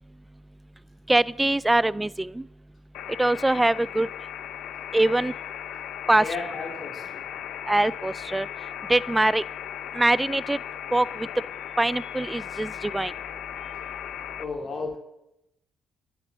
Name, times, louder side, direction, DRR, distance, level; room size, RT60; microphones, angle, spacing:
voice 1, 1.1-2.4 3.2-4.1 4.9-5.3 6.1-6.2 7.7-8.5 8.9-9.4 9.9-10.6 10.9-11.3 11.8-13.1, right 2 dB, 10° right, 21 dB, 0.5 m, -23 dB
sound 1, 2.9-14.4, left 10 dB, 85° left, 0.8 m, -37 dB
voice 2, 6.2-7.2 12.0-12.1 13.6-13.8 14.0-14.1 14.4-15.0, left 4 dB, 45° left, 2 dB, 3.5 m, -35 dB
12.0 x 11.0 x 9.5 m, 0.86 s
cardioid pair, 90°, 0 cm